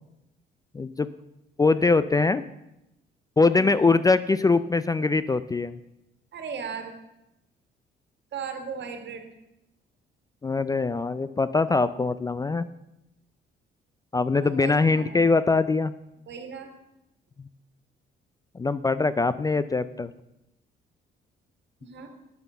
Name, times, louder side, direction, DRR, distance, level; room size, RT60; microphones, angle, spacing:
voice 1, 0.7-1.1 1.6-2.4 3.4-5.8 10.4-12.7 14.1-15.9 18.5-20.1, left 3 dB, 20° left, 15 dB, 0.4 m, -22 dB
voice 2, 3.6-4.0 6.3-6.9 8.3-9.2 14.4-15.3 16.3-16.7 21.8-22.1, right 6 dB, 65° right, 6 dB, 1.8 m, -37 dB
9.2 x 6.6 x 6.8 m, 0.89 s
cardioid pair, 90°, 20 cm